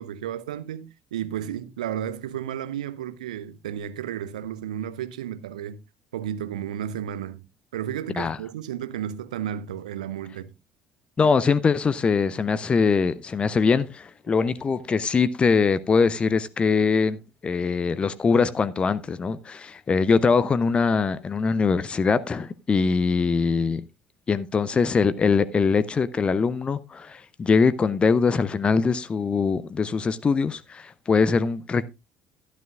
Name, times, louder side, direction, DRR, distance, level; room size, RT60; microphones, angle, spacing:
voice 1, 0.0-5.8 6.1-7.4 7.7-10.5, right 10 dB, 75° right, 0.6 m, -33 dB
voice 2, 11.2-23.8 24.3-31.9, left 5 dB, 25° left, 0.6 m, -22 dB
12.0 x 11.0 x 2.4 m
figure-of-eight pair, 55°, 4 cm